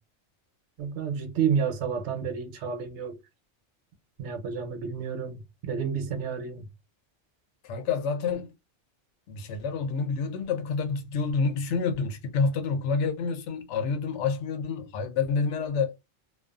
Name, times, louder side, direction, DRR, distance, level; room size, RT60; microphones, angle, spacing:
voice 1, 0.8-3.2 4.2-6.7, right 7 dB, 80° right, 0.9 m, -30 dB
voice 2, 7.6-8.5 9.3-15.9, left 5 dB, 75° left, 0.9 m, -28 dB
2.4 x 2.2 x 2.4 m
omnidirectional pair, 1.2 m